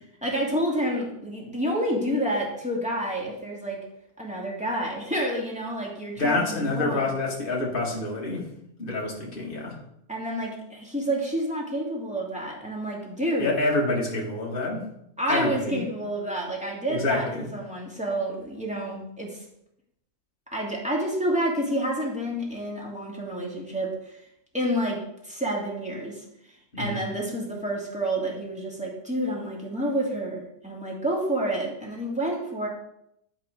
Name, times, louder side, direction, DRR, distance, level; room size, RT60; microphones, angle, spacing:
voice 1, 0.2-3.8 4.2-7.2 10.1-13.5 15.2-19.4 20.5-24.2 24.5-32.7, right 1 dB, 5° right, -3 dB, 2.4 m, -29 dB
voice 2, 6.2-8.5 8.8-9.8 13.4-14.8 15.3-15.8 16.9-17.5 26.7-27.0, left 2 dB, 40° left, -3 dB, 2.2 m, -27 dB
12.0 x 5.0 x 5.1 m, 0.77 s
omnidirectional pair, 1.5 m